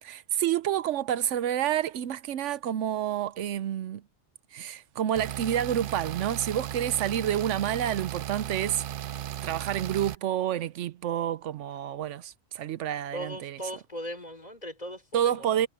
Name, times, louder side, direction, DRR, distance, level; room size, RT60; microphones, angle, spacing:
voice 1, 0.0-4.0 4.5-8.8 9.4-13.6 15.1-15.7, right 10 dB, 80° right, 1.0 m, -29 dB
sound 1, 5.2-10.2, right 11 dB, 60° right, 0.6 m, -36 dB
voice 2, 13.1-15.3, equal, 35° left, 4.2 m, -38 dB
omnidirectional pair, 1.2 m